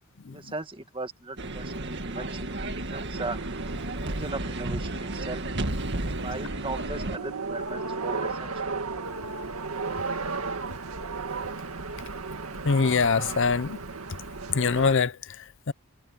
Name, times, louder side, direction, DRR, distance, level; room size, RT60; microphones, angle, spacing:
voice 1, 0.3-2.7 2.9-3.4 4.1-5.4 6.0-8.7, right 2 dB, 25° right, 1.9 m, -38 dB
sound 1, 1.4-7.2, right 2 dB, 55° right, 2.1 m, -32 dB
sound 2, 3.1-14.9, right 4 dB, 85° right, 1.9 m, -35 dB
voice 2, 12.6-13.8 14.5-15.7, left 5 dB, 60° left, 0.7 m, -24 dB
head